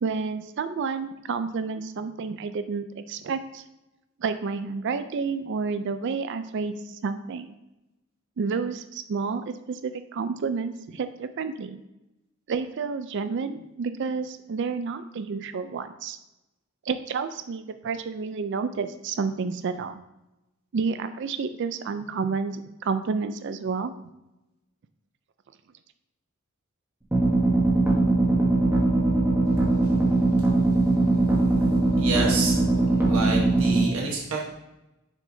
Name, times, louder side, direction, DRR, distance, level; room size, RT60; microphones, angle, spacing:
voice 1, 0.0-3.6 4.2-7.5 8.4-11.8 12.5-16.2 16.9-20.0 20.7-23.9, right 5 dB, 60° right, 10 dB, 0.4 m, -30 dB
sound 1, 27.1-33.9, right 2 dB, 10° right, 1.0 m, -21 dB
voice 2, 32.0-32.6 33.1-34.5, right 4 dB, 80° right, -2 dB, 1.2 m, -28 dB
6.5 x 6.3 x 2.7 m, 0.95 s
head